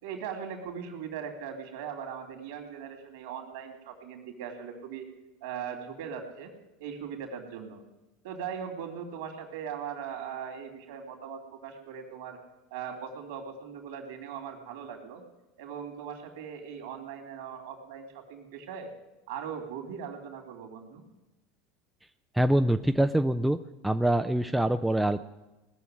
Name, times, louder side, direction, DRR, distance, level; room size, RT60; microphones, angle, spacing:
voice 1, 0.0-5.1 5.4-6.5 6.8-7.8 8.2-12.4 12.7-15.2 15.6-18.9 19.3-21.0, right 7 dB, 60° right, 5 dB, 3.1 m, -39 dB
voice 2, 22.3-23.6 23.8-25.2, right 1 dB, 5° right, 9 dB, 0.5 m, -24 dB
19.0 x 7.1 x 9.8 m, 1.0 s
figure-of-eight pair, 75°, 0 cm